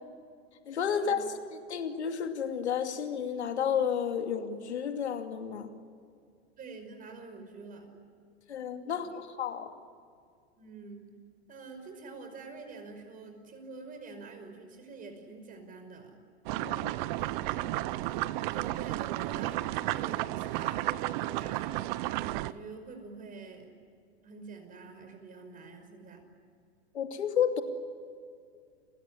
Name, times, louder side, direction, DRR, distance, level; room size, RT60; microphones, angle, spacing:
voice 1, 0.7-5.7 8.5-9.7 16.6-16.9 26.9-27.6, left 7 dB, 85° left, 5 dB, 2.6 m, -31 dB
voice 2, 6.6-8.0 8.9-9.1 10.6-11.0 11.5-16.2 17.2-17.7 18.0-21.7 22.2-23.7 24.2-26.3, right 4 dB, 25° right, 6 dB, 5.4 m, -46 dB
sound 1, 16.5-22.5, right 17 dB, 45° right, 0.9 m, -32 dB
29.5 x 17.0 x 10.0 m, 2.3 s
hypercardioid pair, 120°, 33 cm